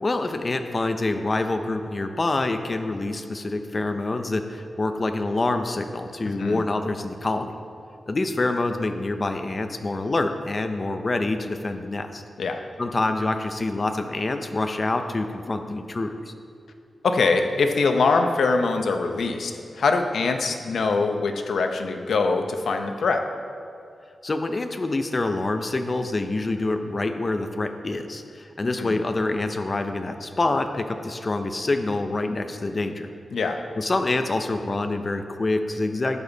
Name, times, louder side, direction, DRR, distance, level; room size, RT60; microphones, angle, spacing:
voice 1, 0.0-7.5 8.1-12.2 12.8-16.3 24.2-33.1 33.8-36.2, left 2 dB, 35° left, 7 dB, 0.7 m, -26 dB
voice 2, 17.0-23.2 28.8-29.0 33.3-33.6, left 4 dB, 80° left, 5 dB, 0.8 m, -23 dB
12.5 x 8.8 x 4.1 m, 2.5 s
wide cardioid pair, 105°, 0 cm